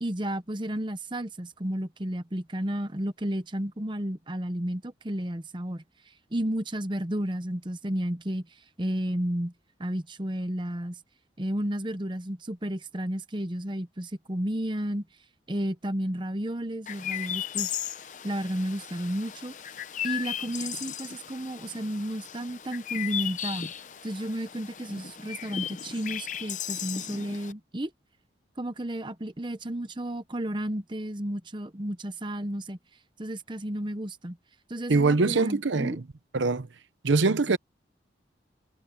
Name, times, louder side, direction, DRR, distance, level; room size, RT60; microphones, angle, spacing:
voice 1, 0.0-5.8 6.3-8.4 8.8-9.5 9.8-11.0 11.4-15.0 15.5-17.7 18.2-19.5 20.0-23.7 24.0-27.9 28.6-32.8 33.2-34.4 34.7-36.0, right 1 dB, 25° right, 0.9 m, -32 dB
Chirp tweet, 16.9-27.5, left 10 dB, 45° left, 0.7 m, -36 dB
voice 2, 34.9-36.0 36.3-36.7 37.0-37.6, right 3 dB, 90° right, 0.8 m, -23 dB
head